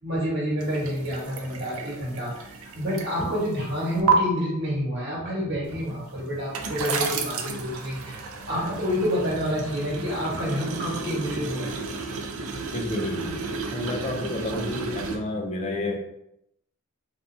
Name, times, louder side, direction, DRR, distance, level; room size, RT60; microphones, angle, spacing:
voice 1, 0.0-11.7, equal, 55° right, -6 dB, 1.3 m, -28 dB
sound 1, 0.6-4.1 5.6-15.2, right 5 dB, 70° right, 0.4 m, -32 dB
voice 2, 12.7-13.4 13.7-16.0, left 1 dB, 30° left, 1 dB, 0.4 m, -30 dB
3.4 x 2.6 x 2.6 m, 0.81 s
head